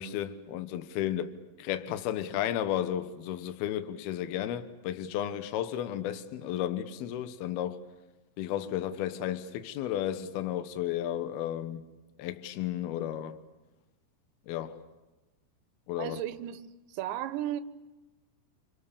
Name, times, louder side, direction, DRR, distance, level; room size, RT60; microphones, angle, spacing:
voice 1, 0.0-1.3 1.6-7.8 8.4-11.9 12.2-13.4 14.5-14.8 15.9-16.2, left 11 dB, 70° left, 2.7 m, -33 dB
voice 2, 16.0-16.6 16.9-17.6, right 12 dB, 75° right, 3.1 m, -34 dB
28.5 x 26.0 x 7.0 m
omnidirectional pair, 5.4 m